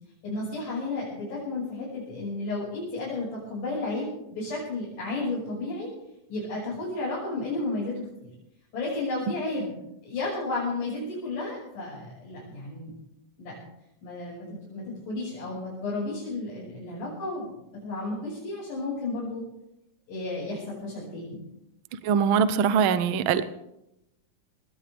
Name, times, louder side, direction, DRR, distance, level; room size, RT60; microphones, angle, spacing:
voice 1, 0.2-5.9 6.3-7.9 8.2-8.3 8.7-9.7 10.0-12.9 13.4-13.5 14.0-17.5 17.8-19.4 20.1-21.5, left 2 dB, 75° left, -8 dB, 7.7 m, -32 dB
voice 2, 22.0-23.4, right 7 dB, 85° right, 12 dB, 1.1 m, -22 dB
20.0 x 17.5 x 3.5 m, 0.84 s
omnidirectional pair, 3.7 m